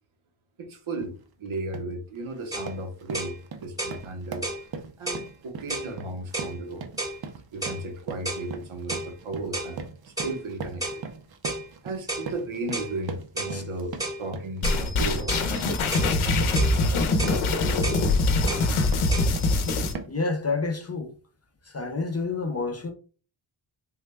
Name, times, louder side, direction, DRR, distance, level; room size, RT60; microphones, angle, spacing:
voice 1, 0.6-1.1 1.4-4.5 5.0-6.9 7.5-11.0 11.8-15.5, right 2 dB, 75° right, 1.0 m, -35 dB
sound 1, 0.9-1.1 1.5-2.0 2.3-19.6 19.9-20.3, right 5 dB, 50° right, 0.6 m, -40 dB
sound 2, 2.5-2.7 3.1-3.4 3.8-4.0 4.4-4.6 5.1-5.3 5.7-5.9 6.3-6.5 7.0-7.2 7.6-7.8 8.2-8.5 8.9-9.1 9.5-9.7 10.2-10.4 10.8-11.0 11.4-11.7 12.1-12.3 12.7-12.9 13.4-13.6 14.0-14.2 14.6-14.8 15.3-15.5 15.9-16.1 16.5-16.8 17.2-17.4 17.8-18.0 18.5-18.7 19.1-19.2, right 2 dB, 5° right, 0.8 m, -32 dB
sound 3, 14.6-19.9, left 2 dB, 75° left, 0.7 m, -23 dB
voice 2, 20.0-21.2 21.6-22.9, left 3 dB, 30° left, 0.4 m, -29 dB
3.6 x 2.1 x 3.3 m
wide cardioid pair, 130°, 50 cm